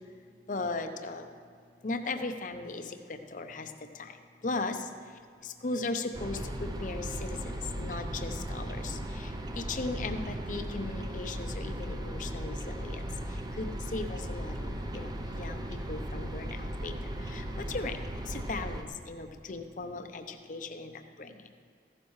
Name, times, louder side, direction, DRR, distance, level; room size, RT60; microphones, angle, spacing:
voice 1, 0.5-1.2 1.8-2.8 3.3-3.7 4.4-4.8 5.6-6.4 6.8-8.9 9.6-12.9 13.6-15.1 15.4-15.6 15.9-16.5 16.8-16.9 17.3-17.9 18.3-20.9, left 3 dB, 45° left, 7 dB, 0.7 m, -36 dB
sound 1, 6.1-18.8, right 1 dB, 25° right, 0.6 m, -37 dB
14.5 x 11.5 x 3.2 m, 2.2 s
head